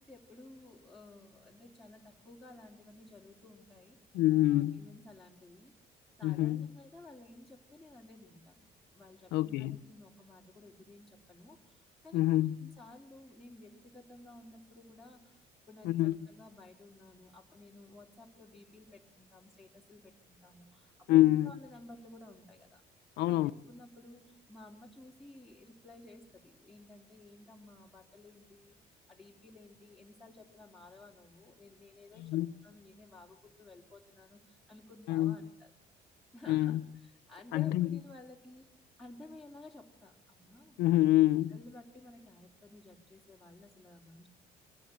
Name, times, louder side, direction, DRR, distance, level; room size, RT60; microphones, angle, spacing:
voice 1, 0.0-4.0 4.5-5.7 6.2-8.7 8.9-22.8 23.2-35.7 36.3-38.7 39.0-40.8 41.5-44.3, left 2 dB, ahead, 3.0 m, -54 dB
voice 2, 4.1-4.8 6.2-6.7 9.3-9.8 12.1-12.7 15.8-16.2 21.1-21.5 23.2-23.5 32.2-32.5 35.1-35.4 36.5-36.8 37.5-37.9 40.8-41.6, left 15 dB, 85° left, 0.7 m, -26 dB
24.0 x 16.5 x 9.0 m
cardioid pair, 110°, 17 cm